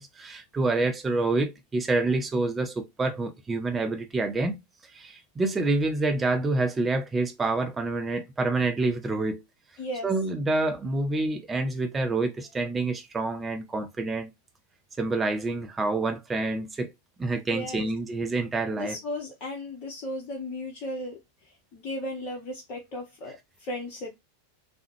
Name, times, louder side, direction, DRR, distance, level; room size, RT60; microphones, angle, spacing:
voice 1, 0.0-4.6 4.9-9.4 10.0-14.3 15.0-16.9 17.2-19.0, right 3 dB, 15° right, 0.5 m, -27 dB
voice 2, 9.8-10.1 17.5-17.9 18.7-21.2 21.7-24.2, left 1 dB, 35° left, 0.7 m, -35 dB
3.5 x 2.0 x 3.0 m
figure-of-eight pair, 90°, 0 cm